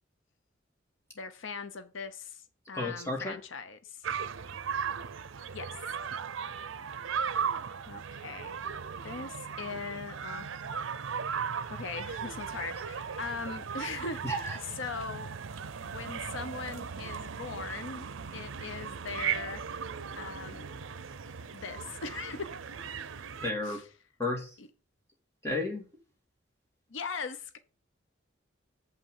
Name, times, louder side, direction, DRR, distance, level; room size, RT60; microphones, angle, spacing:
voice 1, 1.2-4.1 5.5-6.0 7.9-8.5 9.0-10.6 11.7-15.3 15.8-18.1 18.3-19.6 20.2-20.7 21.5-22.6 23.6-23.9 24.6-24.7 26.9-27.6, left 5 dB, 80° left, 10 dB, 0.8 m, -40 dB
voice 2, 2.7-3.3 14.2-14.6 23.4-23.8 24.2-24.5 25.4-25.8, left 2 dB, 15° left, 0 dB, 2.3 m, -32 dB
sound 1, 4.0-23.5, right 7 dB, 85° right, 0.6 m, -37 dB
7.6 x 5.7 x 5.5 m, 0.35 s
head